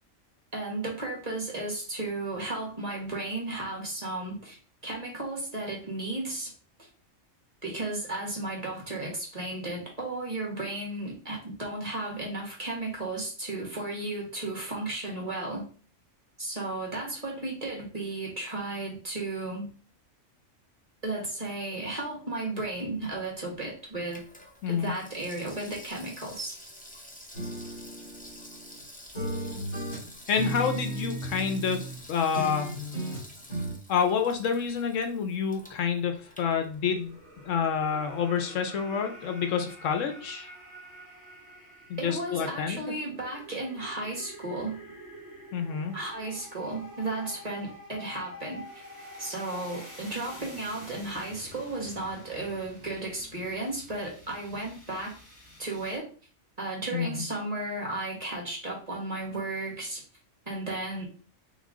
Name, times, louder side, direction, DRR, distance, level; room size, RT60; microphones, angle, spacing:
voice 1, 0.5-4.6 4.8-6.5 6.8-6.9 7.6-15.7 16.4-19.7 21.0-24.2 24.7-26.5 42.0-44.8 45.9-48.8 49.2-55.1 55.6-56.1 56.6-60.0 60.5-61.0, right 2 dB, 30° right, -2 dB, 1.5 m, -34 dB
Water tap faucet / Sink (filling or washing), 22.9-37.2 37.5-37.6, left 1 dB, 10° left, 0.5 m, -50 dB
voice 2, 24.6-24.9 30.3-32.7 33.9-37.2 37.4-40.5 41.9-42.9 45.5-45.9 56.9-57.2, left 6 dB, 70° left, 6 dB, 0.9 m, -28 dB
sound 1, 27.3-28.8 29.1-32.0 32.3-33.7, right 1 dB, 30° left, 2.2 m, -35 dB
sound 2, 36.7-56.0, equal, 5° right, 1.9 m, -48 dB
3.7 x 3.1 x 3.6 m, 0.39 s
omnidirectional pair, 1.4 m